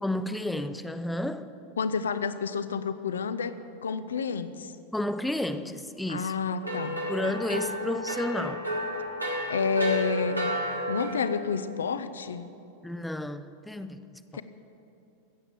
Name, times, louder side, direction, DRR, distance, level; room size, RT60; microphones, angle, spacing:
voice 1, 0.0-1.6 4.9-6.4 7.1-8.7 12.8-14.2, left 1 dB, 5° left, 0.5 m, -32 dB
voice 2, 1.8-4.7 6.1-7.4 9.5-10.5 10.9-12.4 14.3-14.4, left 5 dB, 65° left, 0.6 m, -30 dB
sound 1, 6.6-11.3, equal, 90° right, 2.1 m, -32 dB
16.0 x 8.0 x 7.3 m
figure-of-eight pair, 90°, 0 cm